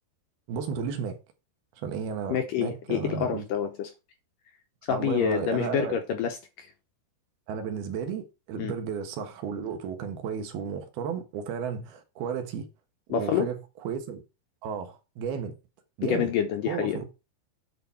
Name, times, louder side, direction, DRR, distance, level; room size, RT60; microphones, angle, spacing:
voice 1, 0.5-1.2 1.8-3.5 4.9-5.9 7.5-12.7 13.1-13.6 13.8-14.2 14.6-15.5 16.0-16.3 16.7-17.1, right 7 dB, 70° right, 3.1 m, -33 dB
voice 2, 2.3-3.9 4.9-6.7 8.6-8.7 13.1-13.5 16.0-17.0, left 8 dB, 70° left, 2.2 m, -27 dB
10.0 x 4.8 x 5.7 m
omnidirectional pair, 4.8 m